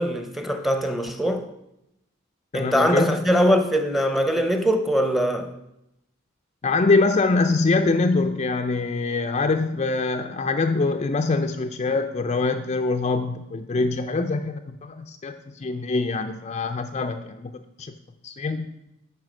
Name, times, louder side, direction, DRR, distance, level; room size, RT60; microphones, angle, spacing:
voice 1, 0.0-1.5 2.5-5.5, equal, ahead, 0.7 m, -22 dB
voice 2, 2.5-3.2 6.6-17.5 17.8-17.9 18.2-18.7, left 3 dB, 30° left, 0.4 m, -24 dB
9.2 x 5.5 x 6.2 m
head